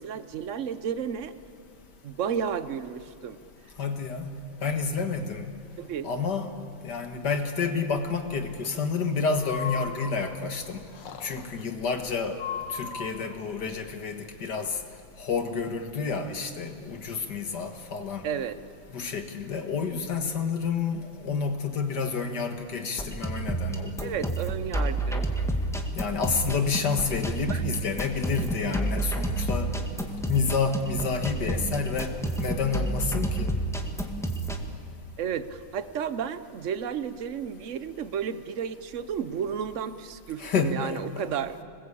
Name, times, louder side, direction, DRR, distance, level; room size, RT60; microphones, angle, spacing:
voice 1, 0.0-1.3 2.0-3.4 5.8-6.1 18.2-18.6 24.0-25.2 27.5-27.6 35.2-41.6, right 8 dB, 65° right, 13 dB, 0.7 m, -32 dB
voice 2, 3.8-4.3 4.6-5.5 6.0-6.5 6.8-10.8 11.2-12.4 12.7-14.8 15.2-18.3 18.9-24.3 26.0-29.7 30.3-33.5 40.4-41.3, left 5 dB, 55° left, 6 dB, 2.0 m, -29 dB
Breathing, 9.3-10.5 10.9-11.6 12.3-13.4, left 6 dB, 85° left, 2.3 m, -37 dB
sound 1, 22.9-34.6, right 2 dB, ahead, 1.7 m, -30 dB
sound 2, 34.9-35.1, right 1 dB, 25° right, 2.0 m, -46 dB
26.0 x 20.5 x 8.6 m, 2.4 s
omnidirectional pair, 2.4 m